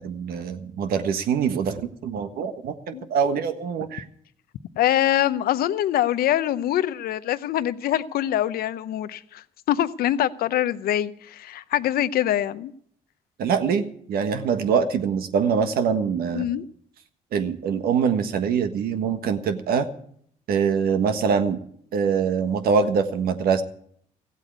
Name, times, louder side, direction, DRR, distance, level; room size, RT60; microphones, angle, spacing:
voice 1, 0.0-4.0 13.4-16.5 17.3-19.9 20.5-21.6 21.9-23.6, right 6 dB, 75° right, 1.5 m, -24 dB
voice 2, 4.8-12.7 16.3-16.6, left 12 dB, 70° left, 0.7 m, -24 dB
15.5 x 8.3 x 8.2 m
supercardioid pair, 70°, 16 cm